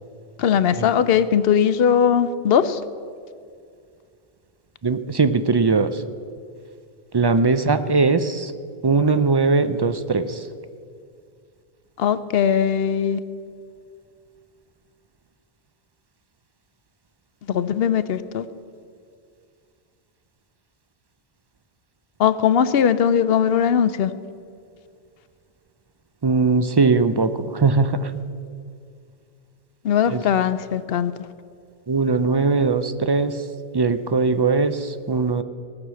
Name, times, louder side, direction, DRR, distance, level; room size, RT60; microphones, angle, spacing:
voice 1, 0.4-2.8 12.0-13.2 17.5-18.5 22.2-24.1 29.8-31.1, left 8 dB, 70° left, 14 dB, 0.8 m, -19 dB
voice 2, 4.8-6.0 7.1-8.5 8.8-10.5 26.2-28.1 30.1-30.2 31.9-33.4 33.7-35.4, right 4 dB, 45° right, 11 dB, 0.3 m, -20 dB
18.5 x 6.3 x 7.6 m, 2.2 s
omnidirectional pair, 1.0 m